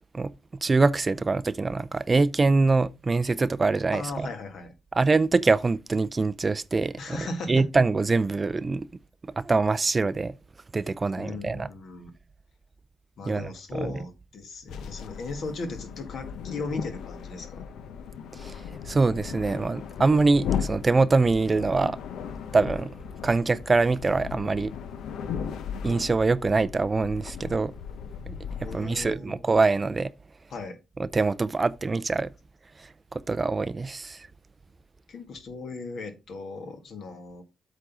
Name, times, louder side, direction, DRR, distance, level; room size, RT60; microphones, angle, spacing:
voice 1, 0.6-4.3 4.9-8.9 9.4-10.3 10.7-11.7 13.3-13.9 18.3-22.0 22.5-22.9 23.2-24.7 25.8-27.7 28.3-28.4 28.7-30.1 31.0-32.3 32.8-34.3, right 3 dB, 25° right, 0.4 m, -24 dB
voice 2, 3.9-4.7 7.0-7.7 11.1-12.1 13.2-17.6 28.6-29.4 30.5-30.8 35.1-37.4, left 3 dB, 60° left, 1.9 m, -37 dB
sound 1, 14.7-29.1, left 7 dB, 75° left, 0.8 m, -37 dB
8.2 x 3.8 x 6.0 m
cardioid pair, 115°, 0 cm